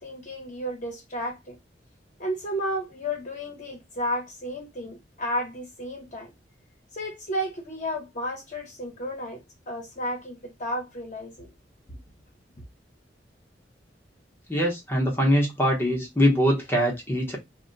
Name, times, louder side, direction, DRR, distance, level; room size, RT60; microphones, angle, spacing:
voice 1, 0.0-1.6 2.2-6.3 6.9-11.5 11.9-12.0, equal, 45° left, 0.9 m, -32 dB
voice 2, 14.5-17.4, equal, 15° left, 0.8 m, -23 dB
2.2 x 2.1 x 3.8 m
head